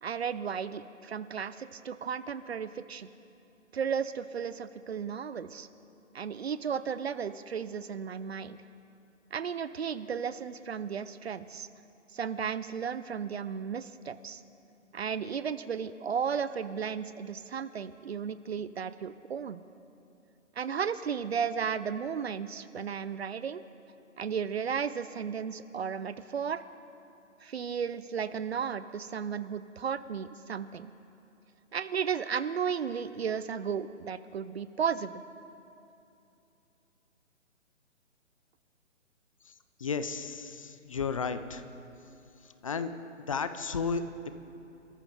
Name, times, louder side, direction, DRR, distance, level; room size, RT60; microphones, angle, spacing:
voice 1, 0.0-3.1 3.7-5.7 6.1-8.6 9.3-11.7 12.1-14.4 14.9-19.6 20.6-23.6 24.2-26.6 27.4-30.9 31.7-35.2, right 7 dB, 55° right, 14 dB, 0.6 m, -34 dB
voice 2, 39.8-41.6 42.4-44.3, left 5 dB, 25° left, 10 dB, 0.5 m, -34 dB
27.5 x 13.5 x 3.9 m, 2.8 s
figure-of-eight pair, 140°, 38 cm